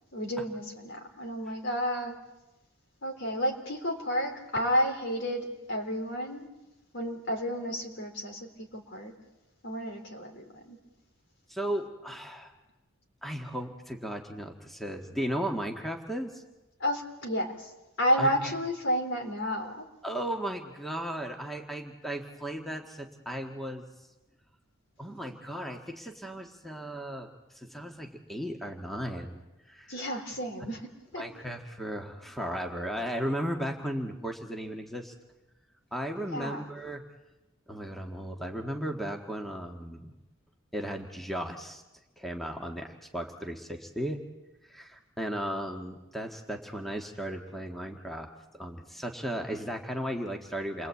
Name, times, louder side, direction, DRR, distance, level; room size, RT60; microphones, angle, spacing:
voice 1, 0.1-2.2 3.0-6.5 6.9-9.1 9.6-10.8 16.8-17.7 18.0-19.9 29.9-31.2 36.3-36.6, equal, 60° left, 4 dB, 3.8 m, -31 dB
voice 2, 11.5-12.5 13.2-16.4 18.2-18.5 20.0-23.8 25.0-27.3 27.5-29.4 29.7-29.9 31.2-35.1 35.9-37.0 37.7-40.1 40.7-41.8 42.2-44.2 44.7-48.3 48.5-50.9, equal, ahead, 2 dB, 1.6 m, -35 dB
29.0 x 22.0 x 8.4 m, 1.0 s
head